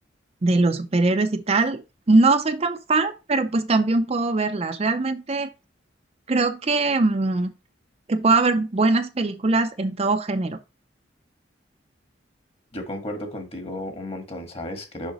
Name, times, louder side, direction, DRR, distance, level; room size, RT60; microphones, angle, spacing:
voice 1, 0.4-1.8 2.1-5.5 6.3-7.5 8.1-10.6, right 3 dB, 35° right, 0.5 m, -21 dB
voice 2, 12.7-15.1, left 1 dB, 30° left, 1.5 m, -33 dB
6.3 x 5.6 x 3.0 m
head